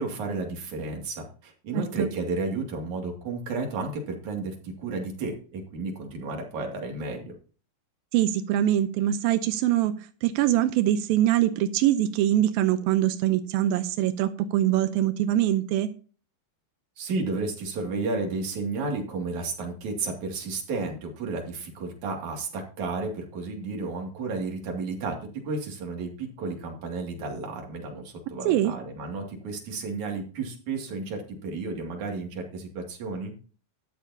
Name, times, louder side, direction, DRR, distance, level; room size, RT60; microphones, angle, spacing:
voice 1, 0.0-7.3 17.0-25.2 25.4-33.3, right 3 dB, 55° right, 2 dB, 3.6 m, -32 dB
voice 2, 8.1-9.9 10.2-15.9 28.5-28.7, right 12 dB, 90° right, 9 dB, 2.5 m, -23 dB
13.0 x 11.0 x 2.8 m, 0.39 s
omnidirectional pair, 4.2 m